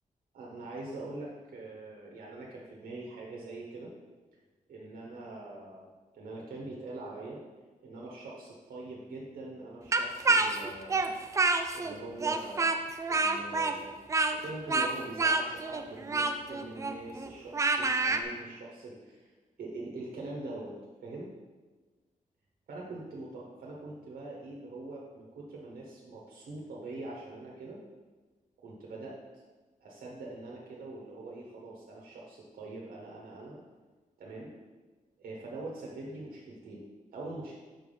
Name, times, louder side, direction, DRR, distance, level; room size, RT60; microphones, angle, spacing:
voice 1, 0.3-3.9 4.7-7.4 7.8-11.0 11.7-12.7 13.1-13.9 14.3-19.3 19.6-20.8 21.0-21.3 22.7-27.8 28.6-29.2 29.8-33.6 34.2-34.5 35.2-36.8 37.1-37.6, right 2 dB, 90° right, -3 dB, 1.0 m, -43 dB
Speech, 9.9-11.9 12.2-18.2, right 3 dB, 20° right, 0.3 m, -28 dB
5.9 x 3.4 x 5.4 m, 1.3 s
wide cardioid pair, 155°, 15 cm